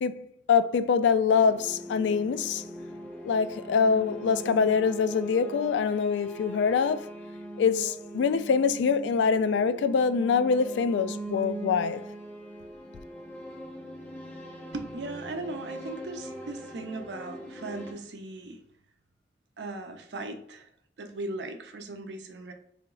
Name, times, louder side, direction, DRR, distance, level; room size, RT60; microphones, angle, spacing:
voice 1, 0.0-2.6 3.2-7.0 7.6-12.0, left 6 dB, 85° left, 0.3 m, -24 dB
sound 1, 1.3-17.9, right 1 dB, 10° left, 0.6 m, -41 dB
voice 2, 14.7-18.6 19.6-20.7 21.0-22.5, right 2 dB, 80° right, 0.6 m, -38 dB
3.8 x 3.4 x 2.3 m
head